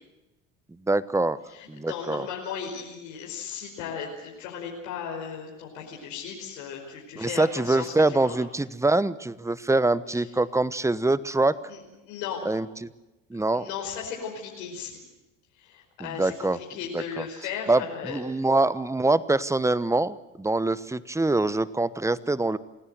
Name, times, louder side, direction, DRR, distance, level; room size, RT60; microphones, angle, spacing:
voice 1, 0.9-1.4 1.7-2.3 7.2-11.6 12.4-12.9 13.3-13.7 16.0-16.6 16.9-17.2 17.7-22.6, right 2 dB, 5° right, 17 dB, 1.0 m, -24 dB
voice 2, 1.5-8.4 10.1-10.2 11.7-12.4 13.5-15.0 15.6-18.2, left 7 dB, 70° left, -1 dB, 5.1 m, -36 dB
28.0 x 17.0 x 8.0 m, 1.0 s
hypercardioid pair, 70°, 39 cm